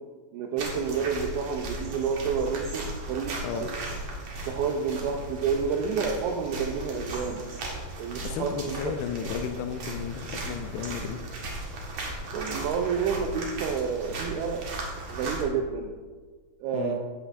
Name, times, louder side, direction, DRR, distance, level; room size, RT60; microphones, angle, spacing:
voice 1, 0.3-3.3 4.5-7.4 8.0-8.9 12.3-14.6 15.1-15.9 16.6-17.0, right 6 dB, 80° right, 2 dB, 2.3 m, -29 dB
sound 1, 0.6-15.4, right 2 dB, 55° right, 2.1 m, -36 dB
voice 2, 8.2-11.2 16.7-17.0, left 7 dB, 90° left, 6 dB, 2.1 m, -33 dB
13.5 x 8.9 x 2.5 m, 1.4 s
omnidirectional pair, 4.9 m